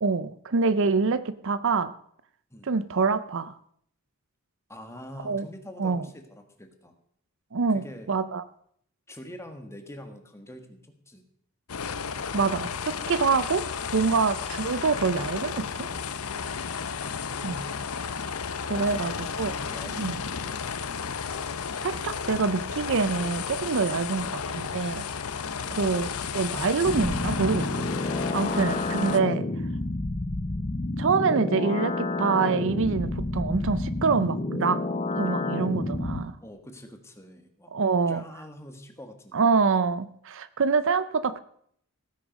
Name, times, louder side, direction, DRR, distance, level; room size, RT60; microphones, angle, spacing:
voice 1, 0.0-1.9 2.7-3.5 5.2-5.5 5.8-6.0 7.5-8.4 12.3-15.9 17.4-17.6 18.7-19.5 20.0-20.1 21.8-25.1 25.7-27.9 28.3-29.5 31.0-34.8 35.1-36.4 37.7-38.2 39.3-41.4, right 4 dB, 60° right, 15 dB, 0.6 m, -26 dB
voice 2, 4.7-6.9 7.7-8.1 9.1-11.2 17.0-17.7 18.7-20.8 36.4-37.7 38.1-39.5, left 1 dB, 15° left, 6 dB, 1.7 m, -45 dB
sound 1, 11.7-29.2, left 6 dB, 80° left, 0.8 m, -33 dB
sound 2, 26.8-36.2, left 2 dB, 30° left, 0.8 m, -29 dB
15.5 x 9.8 x 5.2 m, 0.68 s
head